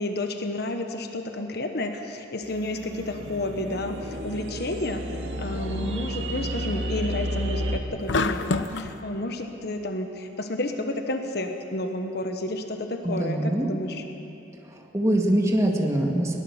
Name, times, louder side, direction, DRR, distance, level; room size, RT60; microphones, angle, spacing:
voice 1, 0.0-14.0, left 1 dB, 60° left, 5 dB, 1.2 m, -31 dB
sound 1, 2.5-7.8, right 1 dB, 80° right, 2.1 m, -32 dB
sound 2, 8.1-8.9, left 3 dB, 85° left, 0.9 m, -26 dB
voice 2, 13.0-13.7 14.7-16.4, right 1 dB, 15° right, 0 dB, 2.0 m, -24 dB
21.5 x 19.0 x 7.3 m, 2.9 s
head